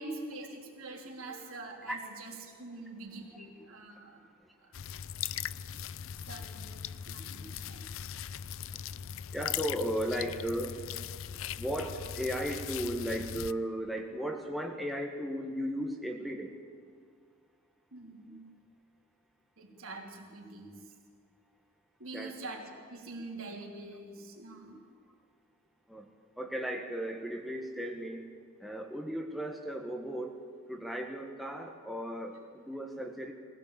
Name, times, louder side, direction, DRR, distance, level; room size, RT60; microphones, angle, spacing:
voice 1, 0.0-4.3 4.6-4.8 6.2-7.9 17.9-18.6 19.6-20.9 22.0-24.9, right 2 dB, 65° right, 0 dB, 3.6 m, -45 dB
sound 1, 4.7-13.5, left 9 dB, 60° left, 0.5 m, -40 dB
voice 2, 9.3-10.8 11.6-16.6 22.1-22.4 25.9-26.1 26.4-28.3 28.6-30.4 30.7-33.3, equal, ahead, 1 dB, 1.4 m, -36 dB
22.5 x 16.5 x 8.6 m, 2.1 s
head